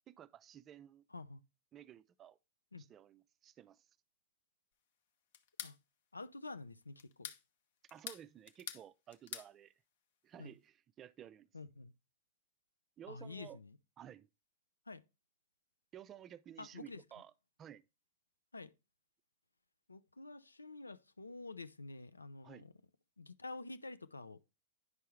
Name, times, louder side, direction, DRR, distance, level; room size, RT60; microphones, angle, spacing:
voice 1, 0.1-1.0 1.7-2.4 2.8-3.9 7.9-9.7 10.2-11.5 13.0-13.6 14.0-14.3 15.9-17.3 17.6-17.8 22.4-22.7, right 10 dB, 25° right, 0.4 m, -54 dB
voice 2, 1.1-1.4 2.7-2.8 5.6-5.8 6.1-7.3 10.4-10.5 11.5-11.9 13.1-13.8 14.9-15.0 16.6-17.0 18.5-18.7 19.9-22.7 23.2-24.4, left 3 dB, 85° left, 0.5 m, -48 dB
sound 1, 5.3-5.8 7.0-7.4 7.9-8.9 9.1-9.5, left 9 dB, 55° left, 0.8 m, -46 dB
9.5 x 5.5 x 3.1 m
figure-of-eight pair, 100°, 0 cm